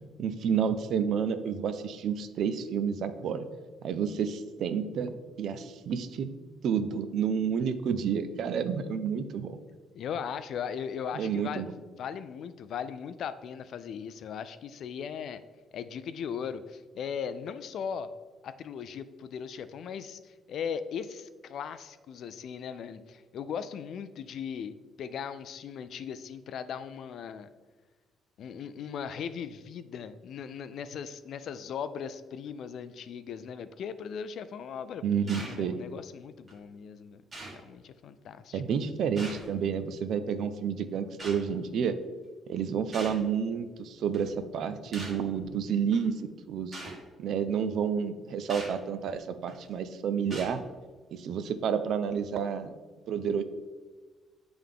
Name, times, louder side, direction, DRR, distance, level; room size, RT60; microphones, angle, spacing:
voice 1, 0.2-3.5 3.8-6.3 6.6-9.6 11.1-11.7 35.0-35.8 38.5-42.0 42.5-46.8 47.2-50.6 51.1-52.7 53.1-53.4, right 7 dB, 60° right, 10 dB, 0.4 m, -30 dB
voice 2, 9.9-11.7 12.0-15.4 15.7-18.1 18.4-24.7 25.0-27.5 28.4-37.2 37.5-38.6, left 7 dB, 55° left, 13 dB, 0.3 m, -38 dB
sound 1, 35.3-35.6 36.5-36.6 37.3-37.6 39.2-39.6 41.2-41.4 42.9-43.2 44.1-44.3 44.9-45.2 45.9-46.0 46.7-47.0 48.5-48.8 49.5-49.7 50.3-50.6, right 2 dB, 25° right, 1.3 m, -41 dB
7.6 x 3.4 x 3.6 m, 1.4 s
cardioid pair, 145°, 0 cm